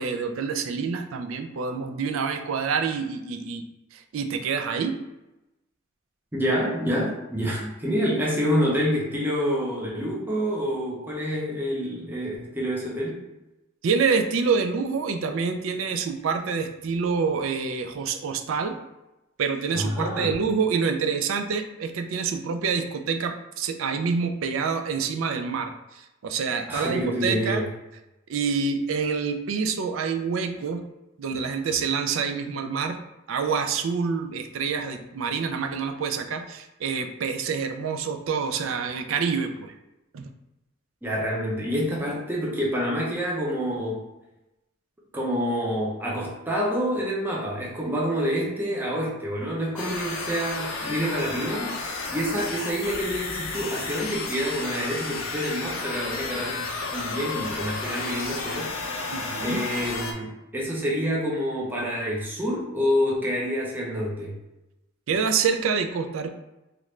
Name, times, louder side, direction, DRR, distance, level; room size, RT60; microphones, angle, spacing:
voice 1, 0.0-3.6 3.9-5.0 13.8-18.7 19.4-27.6 28.3-30.8 31.2-33.0 33.3-39.7 40.1-40.2 59.1-59.6 65.1-66.3, right 5 dB, 75° right, 6 dB, 0.4 m, -27 dB
voice 2, 6.3-13.2 19.7-20.3 26.7-27.7 41.0-44.0 45.1-51.8 52.1-58.7 59.4-64.4, equal, 10° right, -4 dB, 0.6 m, -27 dB
sound 1, 49.8-60.1, left 3 dB, 80° left, 0.5 m, -32 dB
3.1 x 2.5 x 3.1 m, 0.96 s
head